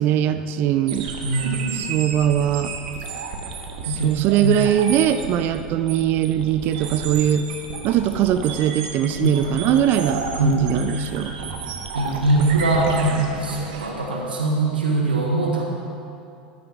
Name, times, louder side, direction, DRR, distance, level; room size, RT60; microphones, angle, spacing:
voice 1, 0.0-1.1 1.7-2.8 3.9-7.4 7.8-11.7, right 10 dB, 40° right, 11 dB, 0.4 m, -21 dB
sound 1, 0.9-13.9, right 5 dB, 60° right, 1.1 m, -32 dB
voice 2, 1.2-1.8 3.8-4.5 9.2-9.3 10.4-10.8 11.9-15.8, right 2 dB, 80° right, -1 dB, 1.4 m, -22 dB
13.0 x 9.4 x 3.6 m, 2.6 s
figure-of-eight pair, 80°, 5 cm